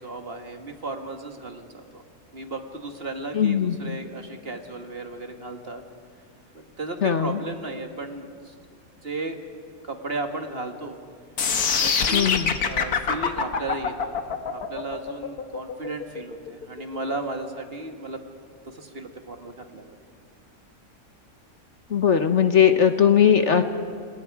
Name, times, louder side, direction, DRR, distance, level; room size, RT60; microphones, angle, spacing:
voice 1, 0.0-2.0 2.3-5.8 6.5-8.5 9.0-9.4 9.8-11.0 11.8-14.1 14.5-18.2 18.6-20.0, right 2 dB, 40° right, 5 dB, 1.9 m, -35 dB
voice 2, 3.3-4.0 7.0-7.4 12.1-12.5 21.9-23.6, left 8 dB, 55° left, 8 dB, 1.3 m, -19 dB
sound 1, 11.4-17.4, left 6 dB, 80° left, 1.9 m, -25 dB
29.0 x 27.0 x 4.8 m, 2.3 s
omnidirectional pair, 1.5 m